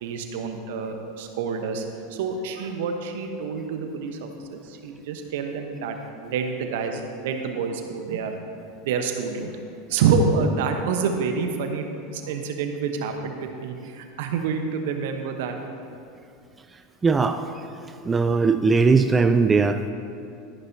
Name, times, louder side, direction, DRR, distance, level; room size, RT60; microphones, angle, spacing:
voice 1, 0.0-1.8 2.1-8.4 8.8-9.5 9.9-11.9 12.1-15.6, right 5 dB, 65° right, 5 dB, 1.0 m, -27 dB
voice 2, 17.0-17.4 18.0-19.9, right 4 dB, 20° right, 8 dB, 0.4 m, -19 dB
13.5 x 11.0 x 2.8 m, 2.5 s
hypercardioid pair, 85°, 0 cm